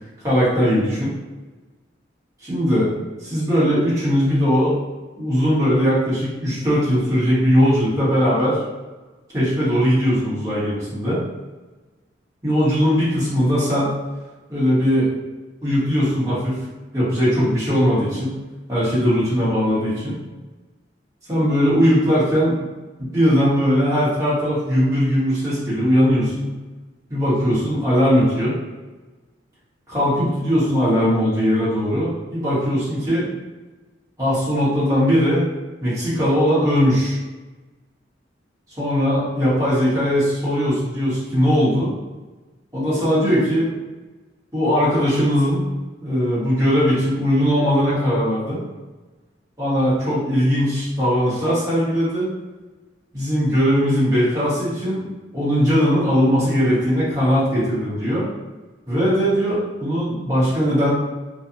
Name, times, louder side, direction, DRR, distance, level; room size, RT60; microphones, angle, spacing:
voice 1, 0.2-1.1 2.4-2.9 3.2-4.7 5.2-8.6 9.3-11.2 12.4-13.9 14.5-15.1 15.6-16.6 16.9-18.3 18.7-20.2 21.3-22.5 23.0-26.5 27.1-28.6 29.9-33.3 34.2-35.4 35.8-37.2 38.8-41.9 42.7-43.7 44.5-45.6 46.0-48.6 49.6-52.3 53.1-55.1 55.3-58.3 58.9-60.9, equal, 20° right, -11 dB, 1.1 m, -19 dB
2.7 x 2.3 x 2.5 m, 1.2 s
head